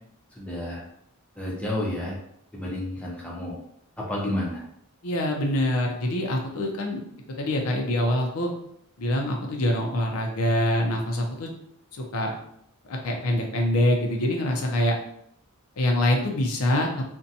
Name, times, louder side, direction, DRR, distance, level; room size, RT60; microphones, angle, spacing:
voice 1, 0.3-0.8 1.4-2.2 2.5-3.5 4.0-4.6, left 1 dB, 5° left, -4 dB, 0.5 m, -30 dB
voice 2, 5.0-7.0 7.4-8.5 9.0-11.5 11.9-12.3 12.9-15.0 15.8-16.9, left 1 dB, 75° left, 2 dB, 0.5 m, -25 dB
2.6 x 2.2 x 2.6 m, 0.72 s
head